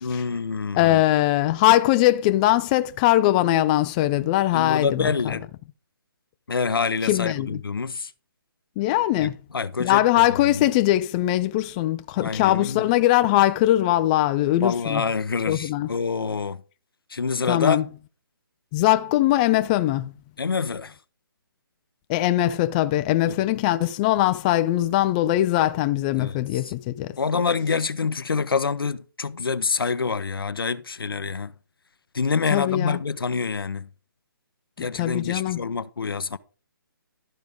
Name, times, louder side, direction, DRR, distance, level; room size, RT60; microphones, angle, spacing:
voice 1, 0.0-1.0 4.5-5.5 6.5-8.1 9.2-10.3 10.5-10.7 12.2-12.9 14.6-16.6 17.1-17.9 20.4-20.9 23.3-23.4 26.2-26.7 27.2-31.5 32.1-33.9 34.8-36.4, left 5 dB, 80° left, 0.7 m, -26 dB
voice 2, 0.7-5.4 7.0-7.6 8.8-9.3 9.8-15.0 15.5-15.9 17.5-17.8 18.7-20.1 22.1-27.2 32.5-33.0 34.8-35.6, left 14 dB, 20° left, 0.4 m, -21 dB
12.5 x 5.2 x 5.3 m
figure-of-eight pair, 145°, 12 cm